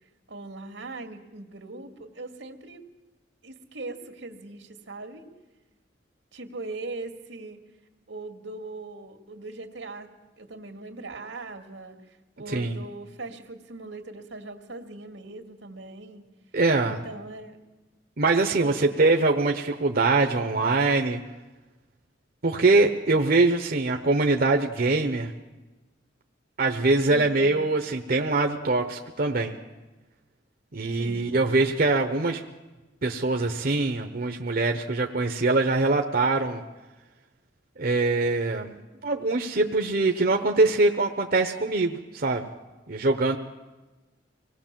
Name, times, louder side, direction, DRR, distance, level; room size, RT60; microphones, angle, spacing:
voice 1, 0.3-2.8 3.4-5.3 6.3-7.6 8.1-10.1 10.4-16.2 16.8-17.6 18.6-18.9 23.2-23.8 30.9-31.3, right 2 dB, 90° right, 5 dB, 2.3 m, -40 dB
voice 2, 16.5-17.0 18.2-21.2 22.4-25.3 26.6-29.6 30.7-32.4 33.0-36.6 37.8-38.7 39.0-42.5 42.9-43.4, right 3 dB, 55° right, 4 dB, 1.0 m, -23 dB
25.0 x 19.0 x 7.5 m, 1.2 s
head